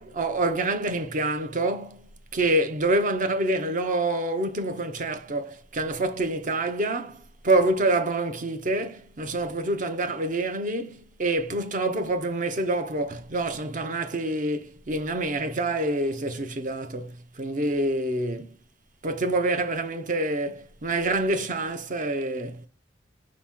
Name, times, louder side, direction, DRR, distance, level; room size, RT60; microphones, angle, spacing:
voice 1, 0.0-2.0 2.3-18.5 19.0-22.7, right 2 dB, 45° right, 0.7 m, -27 dB
5.0 x 2.9 x 3.6 m
head